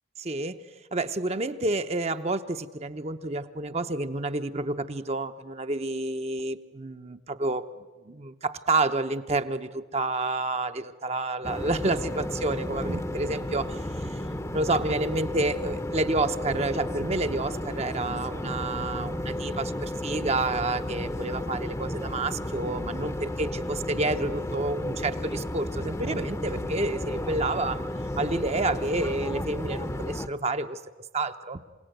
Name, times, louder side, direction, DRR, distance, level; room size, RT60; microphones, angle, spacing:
voice 1, 0.2-0.6 0.9-7.7 8.0-14.2 14.5-27.9 28.2-30.8 31.1-31.6, right 2 dB, 30° right, 9 dB, 0.7 m, -29 dB
sound 1, 11.4-30.3, left 1 dB, 15° left, 0.7 m, -33 dB
28.0 x 17.5 x 9.1 m, 1.3 s
head